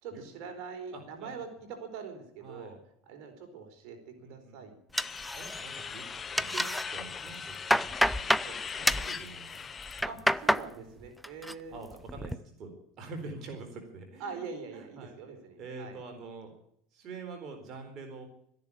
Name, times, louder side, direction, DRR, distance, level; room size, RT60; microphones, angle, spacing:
voice 1, 0.0-2.8 3.1-4.8 8.4-8.6 10.0-11.8 14.2-16.0, right 5 dB, 60° right, 4 dB, 4.2 m, -43 dB
voice 2, 0.9-1.4 2.4-2.8 4.2-4.7 5.1-6.0 6.3-6.6 6.9-8.4 8.7-9.7 10.0-10.1 10.7-10.9 11.7-14.4 14.7-15.2 15.6-16.5 16.9-18.3, right 3 dB, 45° right, 5 dB, 4.2 m, -45 dB
sound 1, 4.9-10.0, left 6 dB, 25° left, 0.9 m, -39 dB
sound 2, 5.0-5.8 6.1-6.8 7.3-8.5 8.9-9.1 9.8-10.7 11.0-11.5 11.9-12.4, equal, ahead, 0.5 m, -28 dB
13.5 x 10.5 x 8.6 m, 0.70 s
supercardioid pair, 110°, 0 cm